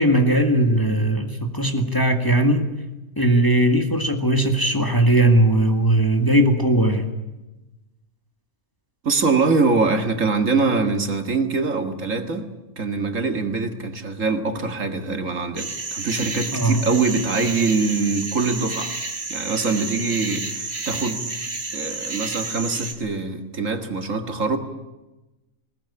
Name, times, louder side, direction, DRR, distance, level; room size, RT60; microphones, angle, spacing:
voice 1, 0.0-2.7 3.2-7.1 16.5-16.8, right 1 dB, 15° left, 4 dB, 2.0 m, -19 dB
voice 2, 9.0-12.5 12.8-18.9 19.3-21.2 21.7-24.6, right 4 dB, 60° right, 6 dB, 2.3 m, -23 dB
sound 1, 15.6-22.9, right 3 dB, 45° right, 2.5 m, -30 dB
21.0 x 19.5 x 9.9 m, 1.0 s
omnidirectional pair, 1.5 m